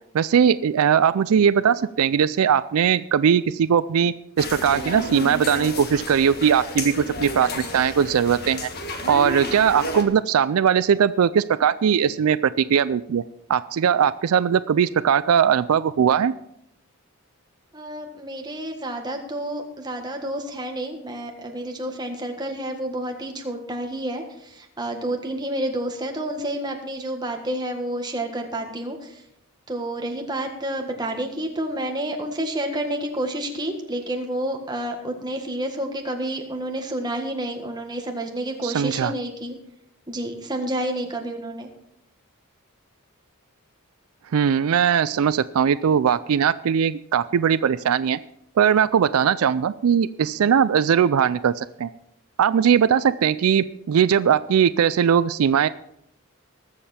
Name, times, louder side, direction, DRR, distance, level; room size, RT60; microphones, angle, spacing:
voice 1, 0.1-8.7 9.1-13.2 13.5-16.3 38.6-39.1 44.3-48.2 48.6-51.9 52.4-55.7, right 8 dB, 75° right, 16 dB, 0.4 m, -20 dB
sound 1, 4.4-10.0, left 1 dB, 45° left, 1.6 m, -32 dB
voice 2, 17.7-29.2 29.7-39.6 40.1-41.7, right 1 dB, 20° right, 3 dB, 1.6 m, -29 dB
20.0 x 7.4 x 4.3 m, 0.75 s
head